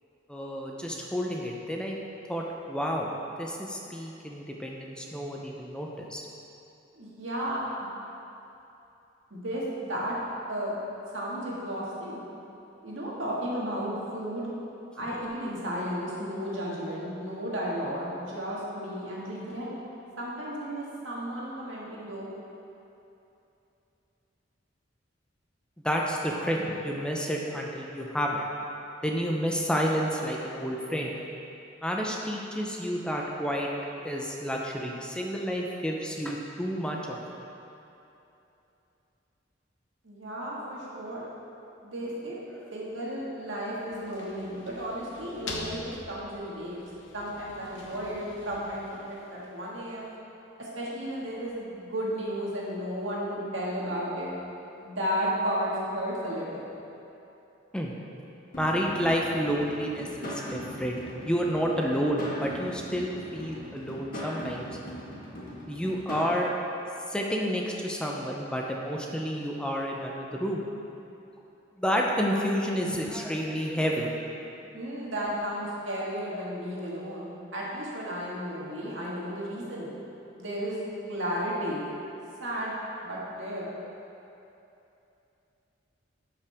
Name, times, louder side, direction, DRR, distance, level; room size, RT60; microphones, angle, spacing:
voice 1, 0.3-2.0 2.3-3.1 3.4-6.2 25.8-28.4 29.0-31.1 31.8-33.7 34.0-37.2 42.6-42.7 57.7-57.9 58.6-61.0 61.3-64.7 65.7-66.5 67.1-70.6 71.8-74.2, equal, 5° left, -1 dB, 0.6 m, -30 dB
voice 2, 6.9-7.9 9.3-10.2 10.5-10.8 11.1-12.2 12.8-14.5 14.9-19.7 20.2-22.3 40.0-41.3 41.8-42.4 42.7-46.8 47.1-50.1 50.6-54.3 54.8-56.7 74.7-79.9 80.4-80.8 81.1-81.9 82.4-82.7 83.0-83.7, equal, 80° right, -5 dB, 1.8 m, -33 dB
sound 1, 43.9-49.8, left 2 dB, 70° left, 1.0 m, -44 dB
sound 2, 58.5-66.3, equal, 50° left, 1.5 m, -40 dB
11.0 x 5.7 x 3.5 m, 2.9 s
head